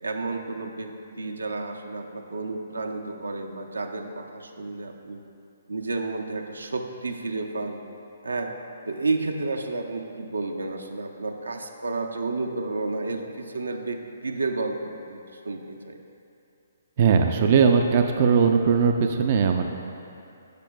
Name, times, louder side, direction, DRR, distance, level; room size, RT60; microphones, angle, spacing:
voice 1, 0.0-5.2 5.7-7.8 8.2-8.5 8.9-16.0, right 3 dB, 80° right, 4 dB, 0.6 m, -31 dB
voice 2, 17.0-19.7, right 6 dB, 45° right, 4 dB, 0.4 m, -19 dB
12.0 x 8.3 x 2.2 m, 2.7 s
figure-of-eight pair, 130°, 0 cm